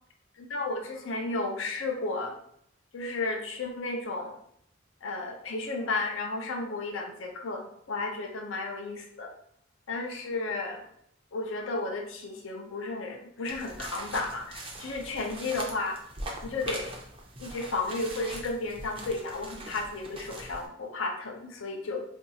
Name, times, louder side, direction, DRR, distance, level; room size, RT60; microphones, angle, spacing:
voice 1, 0.4-2.4 2.9-4.4 5.0-9.3 9.9-10.9 11.3-16.0 16.4-16.9 17.4-22.0, left 3 dB, 85° left, 2 dB, 0.5 m, -33 dB
sound 1, 13.5-20.7, right 2 dB, 30° right, 0.5 m, -42 dB
2.7 x 2.3 x 4.0 m, 0.70 s
head